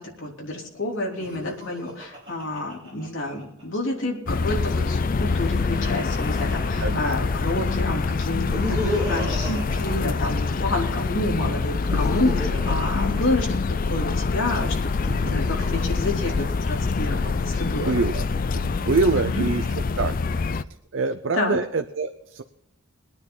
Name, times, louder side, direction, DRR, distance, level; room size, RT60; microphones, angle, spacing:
voice 1, 0.0-18.0 19.1-19.4 21.3-21.6, left 2 dB, 55° left, -1 dB, 3.4 m, -29 dB
Laughter, 1.1-3.6 4.9-7.3 8.2-10.7 11.6-14.0 14.8-16.8, equal, 25° right, 6.4 m, -34 dB
sound 1, 4.3-20.6, left 4 dB, 40° left, 0.4 m, -25 dB
voice 2, 17.9-18.3 18.5-19.6 20.0-20.1 20.9-22.4, right 3 dB, 55° right, 7 dB, 0.6 m, -24 dB
22.0 x 9.7 x 4.0 m, 0.83 s
head